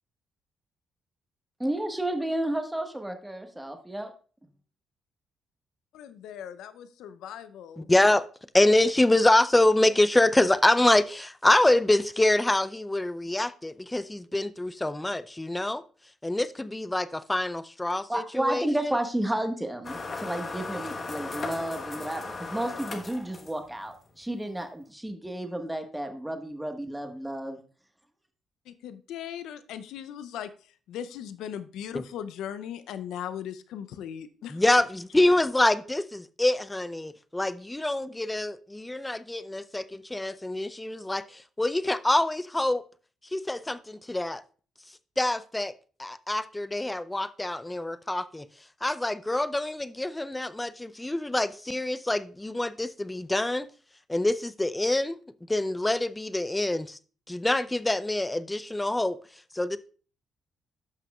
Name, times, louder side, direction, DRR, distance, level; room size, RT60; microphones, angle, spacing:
voice 1, 1.6-4.1 18.1-27.6, right 1 dB, 10° right, 1.4 m, -32 dB
voice 2, 5.9-7.9 28.7-30.5 30.9-34.6, left 9 dB, 75° left, 0.6 m, -38 dB
voice 3, 7.8-8.2 8.5-15.8 16.2-18.9 31.9-32.0 34.5-42.9 43.3-44.4 45.2-45.7 46.0-48.5 48.8-53.7 54.1-55.2 55.5-57.0 57.3-59.2 59.5-59.8, left 1 dB, 15° left, 0.5 m, -25 dB
sound 1, 19.8-23.8, left 3 dB, 40° left, 1.2 m, -37 dB
13.5 x 5.8 x 2.4 m
supercardioid pair, 55°, 0 cm